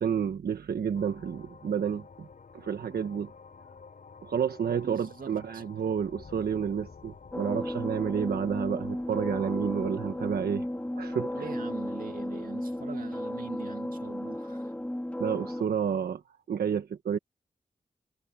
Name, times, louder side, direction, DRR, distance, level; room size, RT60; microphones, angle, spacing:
voice 1, 0.0-2.3 2.5-3.3 4.2-10.7 11.0-11.5 15.2-16.2 16.5-17.2, right 7 dB, 85° right, 1.3 m, -30 dB
sound 1, 0.9-15.1, left 5 dB, 60° left, 6.0 m, -52 dB
voice 2, 4.8-5.6 11.3-14.7, right 5 dB, 65° right, 2.4 m, -42 dB
sound 2, 7.3-15.6, left 1 dB, 10° left, 3.1 m, -34 dB
cardioid pair, 70°, 16 cm